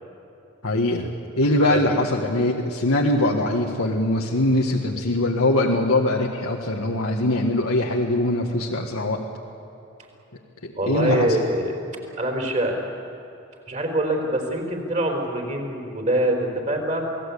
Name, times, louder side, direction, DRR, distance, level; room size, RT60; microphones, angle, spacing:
voice 1, 0.6-1.1 1.4-9.2 10.6-11.4, left 1 dB, 90° left, -1 dB, 1.8 m, -22 dB
voice 2, 10.8-11.8 12.2-12.8 13.7-17.0, right 1 dB, 35° right, 2 dB, 4.3 m, -24 dB
28.0 x 18.5 x 8.5 m, 2.8 s
head